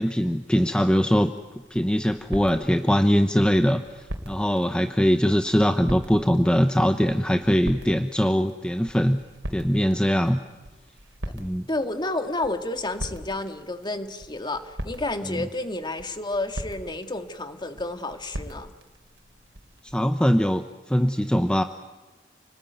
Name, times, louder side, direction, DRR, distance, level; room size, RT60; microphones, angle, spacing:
voice 1, 0.0-1.3 1.7-9.2 9.5-10.4 11.3-11.7 15.3-15.5 19.9-21.6, equal, 5° left, 7 dB, 0.9 m, -22 dB
sound 1, 1.1-20.0, equal, 85° right, 3.4 m, -41 dB
voice 2, 11.7-18.7, left 2 dB, 25° left, 7 dB, 1.8 m, -30 dB
29.5 x 20.5 x 9.2 m, 1.2 s
head